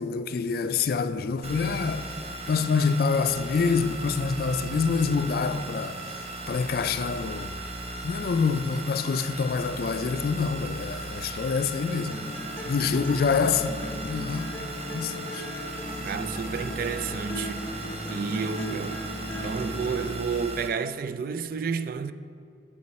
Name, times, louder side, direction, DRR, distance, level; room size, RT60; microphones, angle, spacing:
voice 1, 0.0-7.6 8.0-12.3 12.7-13.7 14.0-14.6 14.9-15.5, left 5 dB, 55° left, 0.4 m, -26 dB
sound 1, 1.4-20.7, right 2 dB, 35° right, 0.8 m, -37 dB
sound 2, 12.1-20.1, equal, 10° left, 0.8 m, -37 dB
voice 2, 16.0-19.0 19.4-22.1, right 6 dB, 55° right, 0.3 m, -31 dB
8.6 x 7.1 x 4.2 m
head